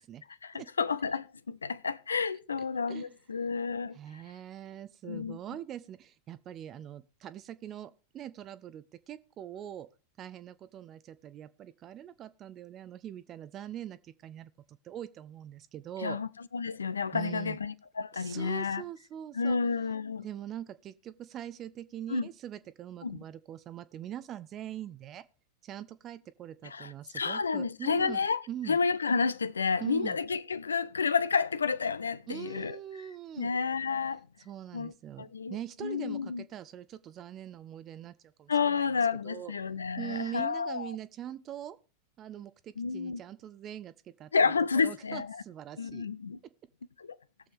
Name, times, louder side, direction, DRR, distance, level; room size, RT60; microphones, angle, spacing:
voice 1, 0.4-4.2 5.0-5.4 16.0-18.8 19.3-20.2 22.1-22.3 23.0-23.2 26.6-32.8 33.4-34.3 34.7-36.4 38.5-40.9 42.8-43.2 44.3-45.4 45.8-46.4 47.0-47.2, left 5 dB, 75° left, 0.5 m, -31 dB
voice 2, 3.9-9.9 10.2-16.2 17.1-17.6 18.1-19.6 20.2-25.2 25.6-28.2 28.5-28.8 29.8-30.2 32.3-33.5 34.4-38.1 38.4-38.9 39.2-39.5 40.0-41.8 42.2-44.5 44.8-46.1, right 11 dB, 30° right, 0.5 m, -42 dB
18.5 x 6.8 x 3.5 m
figure-of-eight pair, 90°, 0 cm